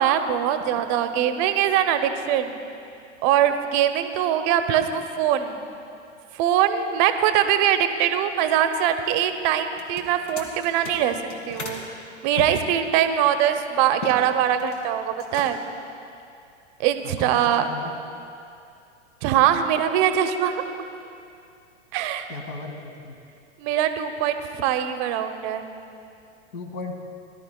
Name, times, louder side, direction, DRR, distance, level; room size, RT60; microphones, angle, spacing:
voice 1, 0.0-2.6 3.2-5.6 6.3-11.2 11.5-11.8 12.2-15.6 16.8-17.7 19.2-20.6 21.9-22.3 23.6-25.7, right 10 dB, 40° right, 8 dB, 0.8 m, -22 dB
sound 1, 9.7-11.8 12.3-14.2 14.5-14.9 15.2-15.8, left 2 dB, 70° left, 2.2 m, -37 dB
voice 2, 17.2-18.0 22.3-23.1 26.5-26.9, left 3 dB, 50° left, 2 dB, 2.1 m, -36 dB
19.5 x 12.0 x 2.3 m, 2.5 s
hypercardioid pair, 105°, 37 cm